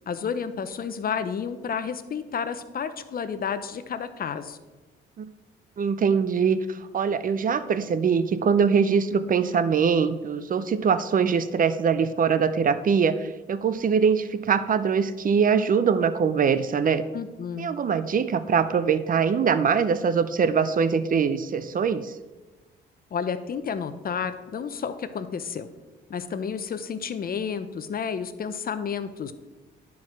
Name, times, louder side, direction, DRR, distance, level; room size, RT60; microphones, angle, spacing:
voice 1, 0.1-4.6 17.1-17.7 23.1-25.7 26.1-29.3, left 6 dB, 45° left, 11 dB, 0.8 m, -31 dB
voice 2, 5.8-17.1 17.6-22.2, right 6 dB, 45° right, 13 dB, 0.6 m, -23 dB
11.5 x 4.8 x 6.0 m, 1.2 s
cardioid pair, 90°, 20 cm